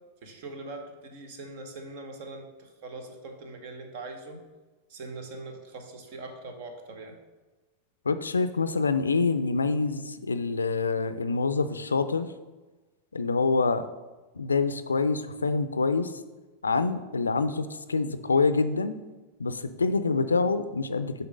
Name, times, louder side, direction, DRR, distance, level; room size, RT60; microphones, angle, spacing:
voice 1, 0.2-4.4 4.9-7.2, right 2 dB, 55° right, 5 dB, 1.2 m, -42 dB
voice 2, 8.1-12.3 13.1-13.9 14.4-16.1 16.6-18.9 19.4-21.1, left 4 dB, 80° left, 12 dB, 0.4 m, -26 dB
6.6 x 4.3 x 5.1 m, 1.2 s
figure-of-eight pair, 85°, 0 cm